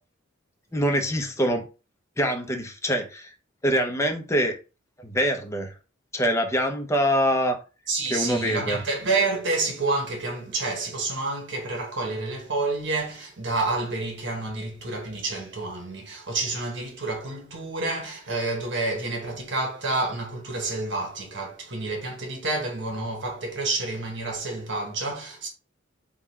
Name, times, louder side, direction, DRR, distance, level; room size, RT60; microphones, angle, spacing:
voice 1, 0.7-1.6 2.2-3.3 3.6-4.6 5.0-5.7 6.1-7.6 8.1-8.8, equal, 15° left, 0.7 m, -24 dB
voice 2, 7.9-25.5, right 3 dB, 65° right, 1.3 m, -29 dB
3.7 x 2.4 x 4.3 m
head